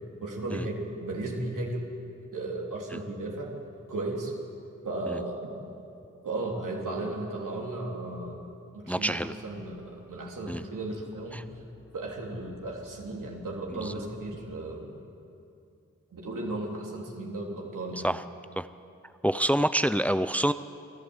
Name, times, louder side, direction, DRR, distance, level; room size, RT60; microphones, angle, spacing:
voice 1, 0.2-1.9 2.3-3.5 3.9-4.3 4.8-5.6 6.2-8.4 8.7-11.4 11.9-15.0 16.1-18.1, right 2 dB, 80° right, -1 dB, 3.4 m, -35 dB
voice 2, 8.9-9.3 10.5-10.6 11.3-11.4 13.7-13.9 18.0-18.2 18.6-18.7 19.2-20.5, right 1 dB, 5° left, 12 dB, 0.6 m, -27 dB
sound 1, 9.3-14.6, equal, 70° left, 5.3 m, -56 dB
28.0 x 12.0 x 8.1 m, 2.5 s
cardioid pair, 45°, 32 cm